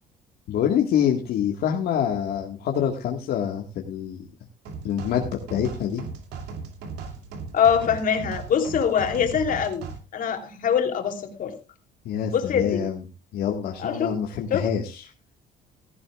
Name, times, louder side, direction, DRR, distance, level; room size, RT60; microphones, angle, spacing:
voice 1, 0.5-4.2 4.8-6.0 12.1-13.0 13.3-15.0, left 9 dB, 70° left, 1 dB, 1.8 m, -26 dB
sound 1, 4.7-10.0, right 5 dB, 85° right, 2.7 m, -37 dB
voice 2, 7.5-9.8 10.1-11.6 12.3-12.8 13.8-14.1 14.5-14.6, left 7 dB, 55° left, 5 dB, 3.2 m, -23 dB
16.5 x 14.5 x 2.4 m, 0.28 s
cardioid pair, 110°, 17 cm